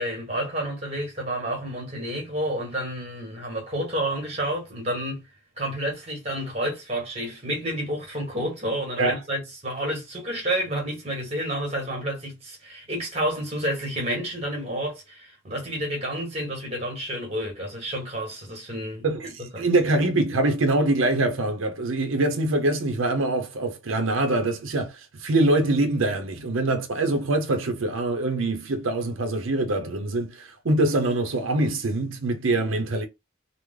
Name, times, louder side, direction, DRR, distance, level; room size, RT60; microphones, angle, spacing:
voice 1, 0.0-5.2 5.6-19.7, right 1 dB, 30° right, 1.4 m, -30 dB
voice 2, 19.0-33.1, right 2 dB, 85° right, 0.6 m, -24 dB
3.1 x 2.1 x 3.6 m
head